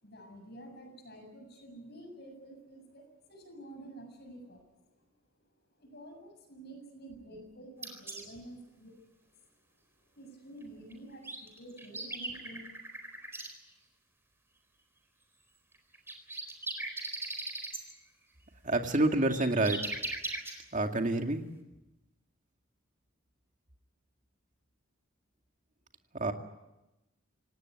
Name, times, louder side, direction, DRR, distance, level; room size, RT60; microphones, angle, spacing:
voice 1, 0.0-4.8 5.8-8.9 9.3-9.4 10.2-12.8, right 1 dB, 50° left, 5 dB, 7.1 m, -49 dB
sound 1, 7.8-8.2 10.9-11.0 11.2-13.5 15.7-17.8 18.7-20.5, right 2 dB, 10° right, 4.3 m, -38 dB
voice 2, 18.6-19.9 20.7-21.4 26.2-26.3, right 2 dB, 40° right, 4 dB, 2.1 m, -28 dB
26.5 x 18.0 x 9.5 m, 0.98 s
head